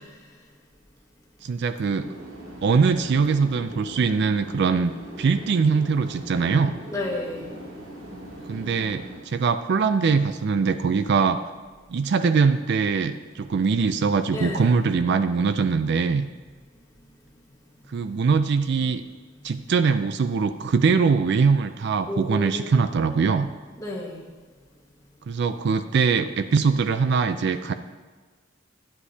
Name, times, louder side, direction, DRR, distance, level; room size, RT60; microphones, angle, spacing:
voice 1, 1.4-2.1 2.6-4.9 5.2-6.7 8.5-11.4 11.9-16.2 17.9-19.0 19.4-23.5 25.3-27.7, right 5 dB, 60° right, 10 dB, 0.4 m, -22 dB
sound 1, 2.0-9.2, right 1 dB, 75° right, 2.4 m, -40 dB
voice 2, 6.9-7.5 14.3-14.7 22.1-22.9 23.8-24.2, left 2 dB, 15° left, -2 dB, 1.4 m, -31 dB
11.0 x 9.7 x 2.8 m, 1.4 s
head